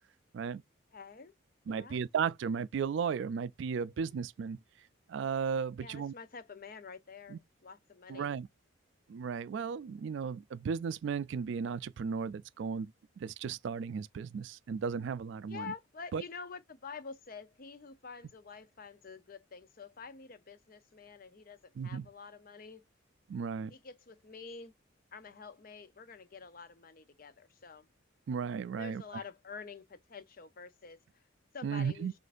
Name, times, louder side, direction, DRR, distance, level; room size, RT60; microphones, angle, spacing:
voice 1, 0.9-1.3 1.7-2.0 5.8-8.3 15.5-22.8 23.7-24.7 25.1-27.9 28.7-31.0 31.5-32.1, left 5 dB, 45° left, 0.6 m, -48 dB
voice 2, 1.7-4.6 5.1-6.1 7.3-7.4 8.1-8.5 9.1-12.9 13.2-15.7 16.1-16.2 21.8-22.1 23.3-23.7 28.3-29.0 31.6-32.1, right 6 dB, 65° right, 0.3 m, -35 dB
6.4 x 2.6 x 2.5 m
head